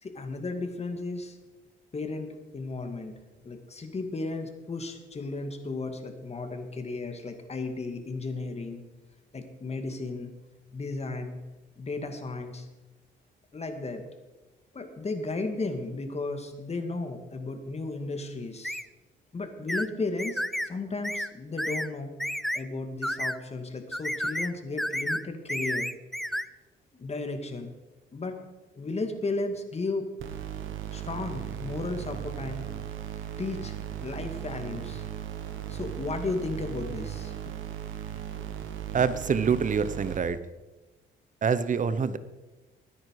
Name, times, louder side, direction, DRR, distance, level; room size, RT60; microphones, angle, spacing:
voice 1, 0.0-1.4 1.9-3.1 3.4-8.8 9.3-10.3 10.7-11.4 11.8-12.7 13.5-14.0 14.7-18.8 19.3-22.2 22.5-25.9 26.9-27.7 28.1-28.4 28.7-30.1 30.9-32.9 33.4-35.0 35.5-37.5, left 3 dB, 30° left, 5 dB, 2.3 m, -34 dB
sound 1, 18.6-18.9 19.7-19.9 20.2-20.7 21.0-21.3 21.6-21.9 22.2-22.6 23.0-23.4 23.9-24.5 24.8-25.2 25.5-26.5, equal, ahead, 0.5 m, -31 dB
sound 2, 30.2-40.2, right 10 dB, 85° right, 1.6 m, -37 dB
voice 2, 38.9-40.4 41.4-42.2, right 6 dB, 40° right, 14 dB, 1.0 m, -25 dB
21.5 x 9.8 x 4.9 m, 1.1 s
cardioid pair, 90°, 20 cm